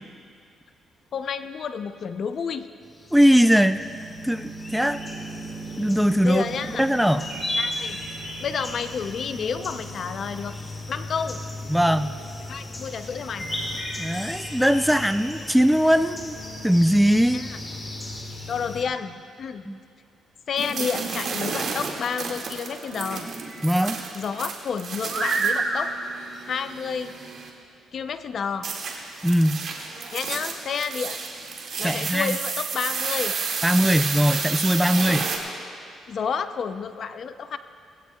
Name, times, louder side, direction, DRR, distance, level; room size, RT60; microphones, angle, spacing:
voice 1, 1.1-2.7 6.2-6.8 7.6-8.0 8.4-10.5 10.9-11.4 12.5-13.4 17.3-17.6 18.5-19.6 20.5-23.3 24.1-25.9 26.4-27.1 27.9-28.7 30.1-31.2 31.8-33.3 36.1-37.6, left 6 dB, 55° left, 10 dB, 0.6 m, -30 dB
sound 1, 2.9-18.9, left 1 dB, 25° left, 1.9 m, -35 dB
voice 2, 3.1-3.8 4.2-5.0 5.8-6.5 6.8-7.3 11.7-12.1 14.0-16.4 16.6-17.5 19.7-19.8 23.6-24.0 29.2-29.6 31.8-32.4 33.6-35.3, equal, ahead, 11 dB, 0.4 m, -20 dB
sound 2, 20.6-27.5 28.6-35.4, right 4 dB, 60° right, 2.0 m, -30 dB
19.5 x 16.0 x 2.3 m, 2.3 s
cardioid pair, 90°, 0 cm